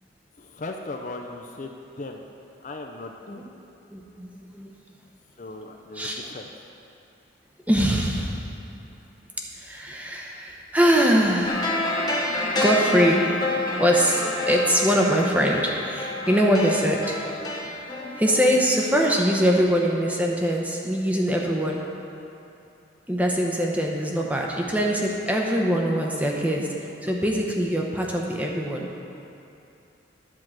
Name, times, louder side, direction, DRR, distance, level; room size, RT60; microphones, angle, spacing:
voice 1, 0.4-2.2 2.6-3.4 5.4-6.5, left 2 dB, 40° left, 3 dB, 0.5 m, -37 dB
voice 2, 3.9-4.7 5.9-6.2 7.7-8.5 9.6-11.8 12.2-17.2 17.9-21.8 23.1-28.9, equal, 10° right, -1 dB, 0.8 m, -23 dB
sound 1, 11.5-19.1 19.4-19.5, left 2 dB, 20° left, 1.0 m, -28 dB
10.5 x 4.7 x 7.5 m, 2.8 s
head